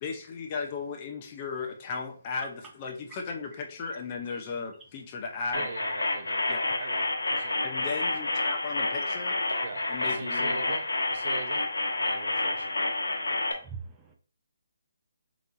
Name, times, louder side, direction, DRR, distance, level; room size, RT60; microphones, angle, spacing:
voice 1, 0.0-5.7 6.5-6.6 7.6-9.4 9.9-10.6, left 5 dB, 25° left, 2 dB, 0.6 m, -36 dB
sound 1, 5.5-13.5, left 2 dB, 90° left, 1.2 m, -29 dB
voice 2, 5.5-6.5 6.8-8.3 9.6-11.7 12.0-12.7, right 4 dB, 50° right, 6 dB, 0.8 m, -42 dB
voice 3, 13.0-14.1, right 6 dB, 10° right, 0 dB, 0.6 m, -44 dB
5.2 x 3.0 x 2.5 m, 0.42 s
hypercardioid pair, 160°, 0 cm